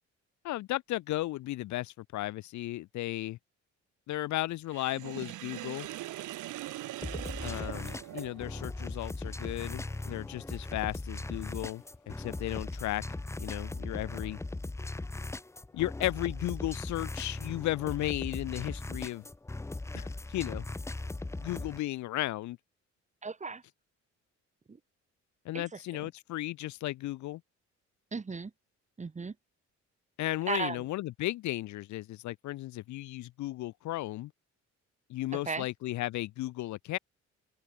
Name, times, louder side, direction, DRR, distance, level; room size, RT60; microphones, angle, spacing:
voice 1, 0.4-3.4 4.1-5.9 7.4-13.0 13.4-14.4 15.7-19.2 19.9-20.7 21.4-22.6 25.4-27.4 30.2-34.3 35.1-37.0, left 16 dB, 70° left, 0.5 m, -35 dB
Sink (filling or washing), 4.7-8.6, right 16 dB, 85° right, 1.1 m, -41 dB
sound 1, 7.0-21.8, left 2 dB, 10° left, 0.6 m, -39 dB
sound 2, 7.8-12.8, left 15 dB, 90° left, 7.9 m, -71 dB
voice 2, 23.2-23.6 24.7-24.8 25.5-26.1 28.1-28.5 29.0-29.3 30.5-30.8 35.3-35.7, right 4 dB, 25° right, 1.3 m, -36 dB
open air
cardioid pair, 90°, 30 cm